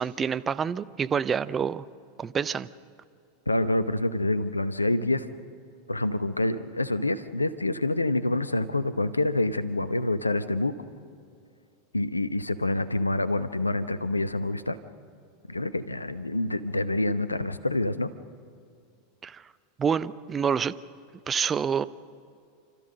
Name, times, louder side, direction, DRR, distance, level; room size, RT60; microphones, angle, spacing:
voice 1, 0.0-1.8 2.2-2.7 19.2-19.4 19.8-20.7 21.3-21.9, right 7 dB, 25° right, 15 dB, 0.6 m, -27 dB
voice 2, 3.5-5.3 5.9-10.7 11.9-14.8 15.5-18.1, left 2 dB, 85° left, 14 dB, 0.8 m, -27 dB
29.5 x 13.5 x 6.6 m, 2.4 s
figure-of-eight pair, 85°, 0 cm